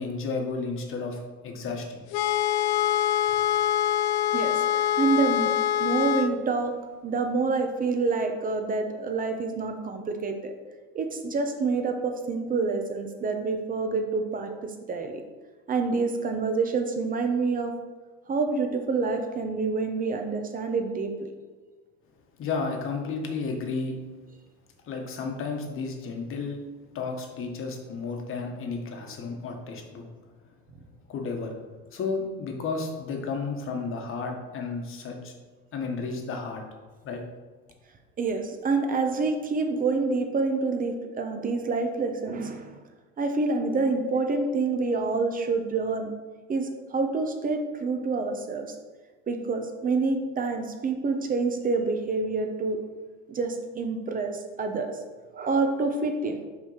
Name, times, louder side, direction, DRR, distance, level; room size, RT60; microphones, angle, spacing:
voice 1, 0.0-2.0 22.4-23.9 24.9-26.6 26.9-30.0 31.1-31.6 31.9-35.3 35.7-36.6 37.0-37.2, left 4 dB, 40° left, 2 dB, 1.4 m, -32 dB
sound 1, 2.1-6.3, left 10 dB, 90° left, 0.5 m, -24 dB
voice 2, 4.3-5.5 5.8-6.8 7.0-10.5 10.9-15.2 15.7-17.8 18.3-21.3 38.2-42.8 43.2-46.1 46.5-48.8 49.3-52.8 53.3-55.0 55.3-56.4, right 4 dB, 25° right, 5 dB, 0.9 m, -27 dB
6.1 x 3.5 x 5.6 m, 1.4 s
supercardioid pair, 115°, 32 cm